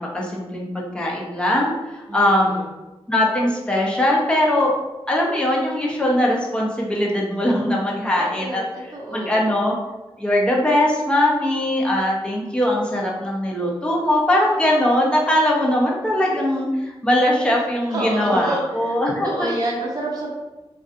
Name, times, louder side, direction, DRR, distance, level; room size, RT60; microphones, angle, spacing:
voice 1, 0.0-2.6 3.1-4.7 5.1-8.6 9.1-9.7 10.2-19.5, left 1 dB, 10° left, -3 dB, 0.6 m, -20 dB
voice 2, 2.1-2.7 8.2-9.5 17.9-20.3, right 1 dB, 35° right, -5 dB, 0.7 m, -28 dB
2.5 x 2.3 x 2.5 m, 1.1 s
wide cardioid pair, 100°, 11 cm